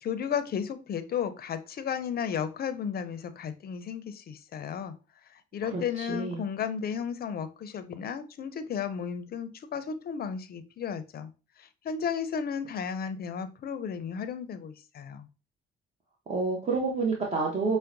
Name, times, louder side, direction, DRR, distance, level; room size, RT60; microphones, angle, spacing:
voice 1, 0.0-4.9 5.3-11.3 11.6-15.3, left 7 dB, 50° left, 11 dB, 0.5 m, -34 dB
voice 2, 5.7-6.4 16.3-17.8, right 4 dB, 30° right, -3 dB, 0.8 m, -29 dB
5.6 x 2.1 x 2.5 m, 0.33 s
cardioid pair, 90°, 20 cm